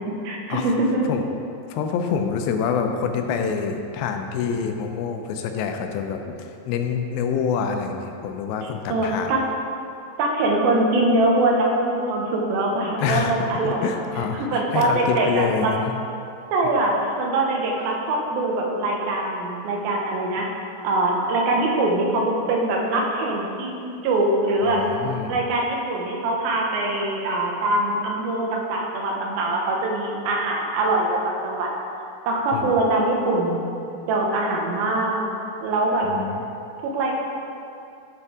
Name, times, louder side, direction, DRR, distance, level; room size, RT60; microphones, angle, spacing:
voice 1, 0.2-1.0 8.9-9.4 10.2-13.9 14.3-15.7 16.5-16.9 17.2-20.5 20.8-24.8 25.3-31.7 32.3-33.7 34.1-35.3 35.6-36.1 36.8-37.2, right 2 dB, 85° right, -1 dB, 2.8 m, -23 dB
voice 2, 1.7-9.3 13.0-13.3 13.6-16.0 24.6-25.4 32.5-32.8 36.0-36.4, left 6 dB, 85° left, 5 dB, 2.4 m, -26 dB
10.0 x 4.4 x 4.9 m, 2.6 s
omnidirectional pair, 4.2 m